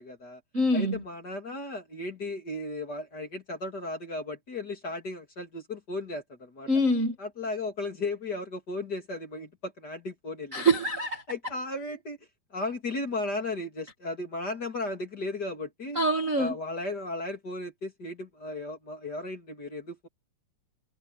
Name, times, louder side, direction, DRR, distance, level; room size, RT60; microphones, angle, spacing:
voice 1, 0.0-0.4 0.7-6.7 7.2-10.6 11.3-12.2 12.5-16.0 16.4-20.1, left 2 dB, 30° left, 2.8 m, -35 dB
voice 2, 0.5-1.0 6.7-7.1 10.5-11.2 15.9-16.5, right 1 dB, 35° right, 1.3 m, -24 dB
omnidirectional pair, 4.5 m